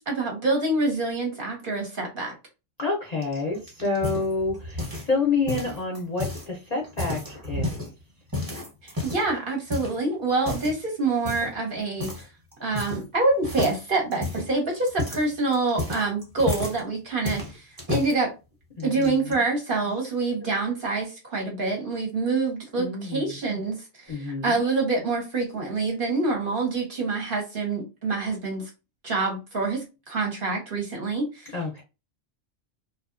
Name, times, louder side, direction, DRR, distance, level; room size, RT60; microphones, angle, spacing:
voice 1, 0.1-2.3 8.8-12.3 12.6-18.3 18.8-28.7 29.0-31.5, right 3 dB, 50° right, 0.8 m, -26 dB
voice 2, 2.8-7.9 18.8-19.4 22.8-23.3 24.1-24.6 31.5-31.8, left 3 dB, 45° left, 0.6 m, -28 dB
sound 1, 3.2-5.2 5.5-6.5 6.8-7.9 8.3-9.3 9.7-10.0 10.4-10.8 11.2-11.6 12.0-12.2 12.5-13.2 13.4-16.8 17.2-18.1 18.8-19.3, left 2 dB, 20° right, 0.7 m, -32 dB
2.6 x 2.2 x 2.4 m
omnidirectional pair, 1.3 m